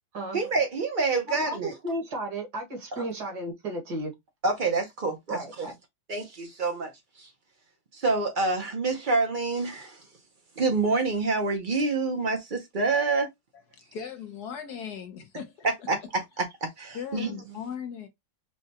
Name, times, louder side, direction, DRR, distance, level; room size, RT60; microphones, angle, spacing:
voice 1, 0.3-1.7 2.9-3.0 4.4-5.7 6.1-7.3 7.9-10.0 10.6-13.3 15.9-16.0 16.4-17.3, right 3 dB, 75° right, 0.4 m, -27 dB
voice 2, 1.3-4.1 5.3-5.7, right 1 dB, 60° right, 2.0 m, -34 dB
voice 3, 13.7-15.7 16.9-18.1, left 7 dB, 65° left, 1.2 m, -38 dB
5.9 x 2.2 x 2.8 m
omnidirectional pair, 2.1 m